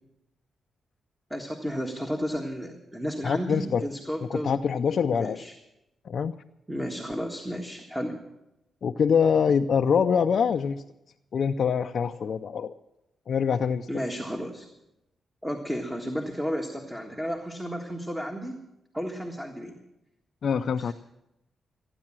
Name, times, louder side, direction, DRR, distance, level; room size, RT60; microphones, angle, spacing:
voice 1, 1.3-4.6 5.1-5.5 6.7-8.2 13.9-14.7 15.4-18.6 18.9-19.8 20.8-20.9, equal, 5° right, 2 dB, 1.7 m, -33 dB
voice 2, 3.2-3.8 4.3-5.4 6.0-6.3 8.8-10.8 11.3-12.7 13.3-13.9 20.4-20.9, left 6 dB, 65° left, 6 dB, 0.5 m, -24 dB
15.0 x 9.8 x 7.4 m, 0.90 s
cardioid pair, 80°, 0 cm